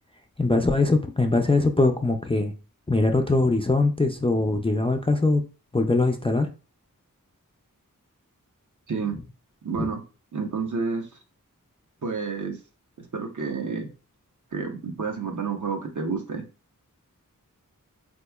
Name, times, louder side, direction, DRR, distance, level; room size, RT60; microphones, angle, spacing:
voice 1, 0.4-2.5 2.9-5.4 5.7-6.5 9.8-9.9, left 2 dB, 15° left, 0.3 m, -22 dB
voice 2, 9.6-10.0 10.3-11.1 12.0-12.6 13.0-13.9 14.5-16.4, right 5 dB, 60° right, 0.8 m, -29 dB
3.5 x 2.9 x 2.3 m
wide cardioid pair, 60°, 34 cm